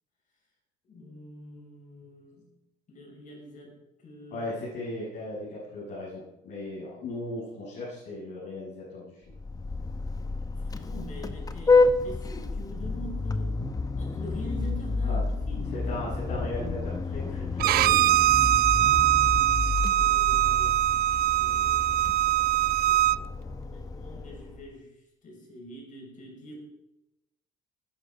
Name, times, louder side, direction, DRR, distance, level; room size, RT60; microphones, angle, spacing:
voice 1, 0.9-2.4 2.9-4.5 10.6-13.6 14.0-15.7 19.9-20.9 21.4-22.1 22.4-24.9 25.2-26.6, left 1 dB, 50° left, 0 dB, 6.6 m, -44 dB
voice 2, 4.3-9.2 15.0-15.2 15.8-18.0, left 1 dB, 75° left, -8 dB, 7.1 m, -37 dB
Vehicle horn car horn honking, 9.3-24.7, left 3 dB, 20° left, 1.0 m, -29 dB
Bowed string instrument, 17.6-23.2, right 15 dB, 65° right, 0.4 m, -22 dB
20.0 x 9.7 x 5.3 m, 0.89 s
cardioid pair, 110°, 17 cm